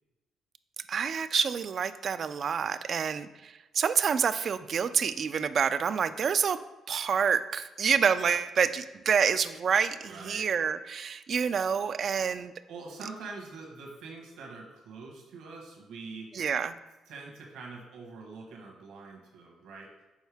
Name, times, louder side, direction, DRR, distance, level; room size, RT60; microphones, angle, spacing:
voice 1, 0.9-6.6 6.9-12.5 16.3-16.8, right 7 dB, 55° right, 12 dB, 0.3 m, -28 dB
voice 2, 10.0-10.5 12.7-16.3 17.1-19.9, right 4 dB, 85° right, -1 dB, 1.2 m, -44 dB
6.3 x 4.4 x 3.4 m, 1.1 s
cardioid pair, 90°, 0 cm